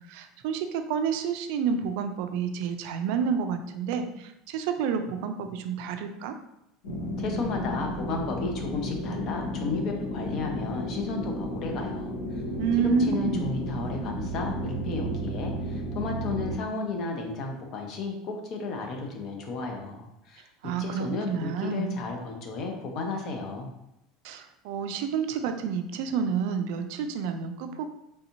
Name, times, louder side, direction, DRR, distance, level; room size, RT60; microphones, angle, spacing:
voice 1, 0.1-6.4 12.6-13.5 20.6-22.0 24.2-27.9, right 6 dB, 65° right, 8 dB, 0.3 m, -29 dB
sound 1, 6.8-16.6, equal, 80° left, 0.9 m, -33 dB
voice 2, 7.2-12.2 12.8-23.7, left 4 dB, 40° left, 2 dB, 0.5 m, -33 dB
3.2 x 2.7 x 2.8 m, 0.84 s
cardioid pair, 165°, 0 cm